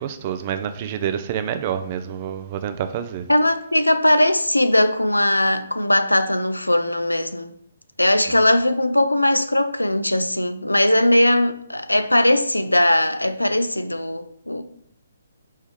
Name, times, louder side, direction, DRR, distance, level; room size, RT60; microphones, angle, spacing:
voice 1, 0.0-3.2 8.3-8.4, right 9 dB, 35° right, 0.4 m, -27 dB
voice 2, 3.3-7.5 8.0-14.6, left 1 dB, 90° left, 0.4 m, -19 dB
4.2 x 3.3 x 3.6 m
figure-of-eight pair, 135°, 0 cm